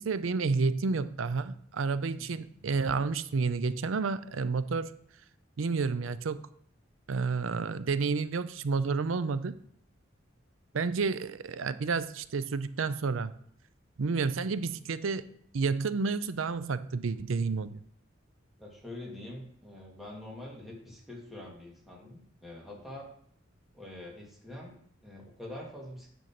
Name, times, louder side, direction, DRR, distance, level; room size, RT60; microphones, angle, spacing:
voice 1, 0.0-4.9 5.6-6.4 7.1-9.6 10.7-13.3 14.0-15.2 15.5-17.8, right 4 dB, 80° right, 14 dB, 0.5 m, -30 dB
voice 2, 2.2-2.6 18.6-23.1 23.7-26.1, left 1 dB, ahead, -3 dB, 2.2 m, -45 dB
9.3 x 4.0 x 5.9 m, 0.65 s
head